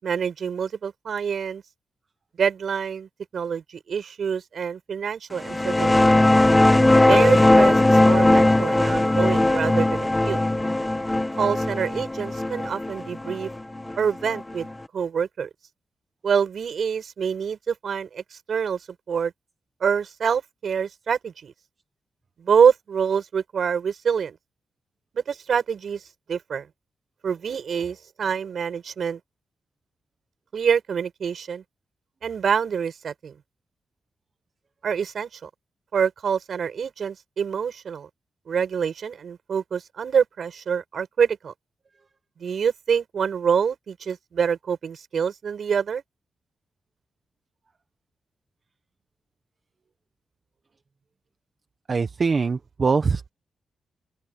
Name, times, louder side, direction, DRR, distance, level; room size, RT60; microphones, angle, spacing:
voice 1, 0.0-1.6 2.4-6.1 7.1-10.4 11.4-13.5 14.0-14.7 14.9-15.5 16.2-18.8 19.1-19.3 19.8-21.5 22.4-24.4 25.1-26.0 26.3-26.7 27.2-29.2 30.5-31.6 32.2-33.4 34.8-35.5 35.9-38.1 38.5-41.5 42.4-46.0, right 7 dB, 60° right, 6.8 m, -26 dB
sound 1, 5.4-14.7, left 1 dB, 10° left, 1.5 m, -19 dB
voice 2, 51.9-53.3, right 4 dB, 35° right, 1.0 m, -23 dB
open air
wide cardioid pair, 145°, 0 cm